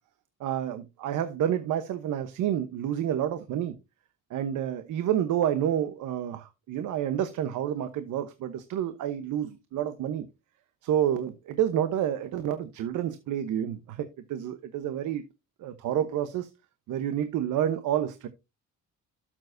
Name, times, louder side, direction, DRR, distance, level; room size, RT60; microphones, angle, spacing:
voice 1, 0.4-3.7 4.3-10.2 10.8-15.2 15.6-16.5 16.9-18.3, right 10 dB, 85° right, 1.0 m, -29 dB
12.0 x 7.5 x 2.6 m
cardioid pair, 90°, 30 cm